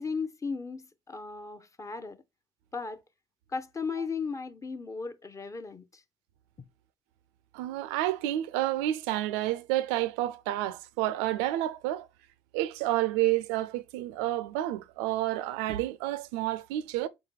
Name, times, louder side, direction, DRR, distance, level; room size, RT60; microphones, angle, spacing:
voice 1, 0.0-2.2 2.7-3.0 3.5-6.0, left 4 dB, 25° left, 0.6 m, -36 dB
voice 2, 7.5-12.1 12.5-17.1, right 15 dB, 80° right, 0.4 m, -30 dB
4.0 x 3.9 x 2.2 m
hypercardioid pair, 70°, 13 cm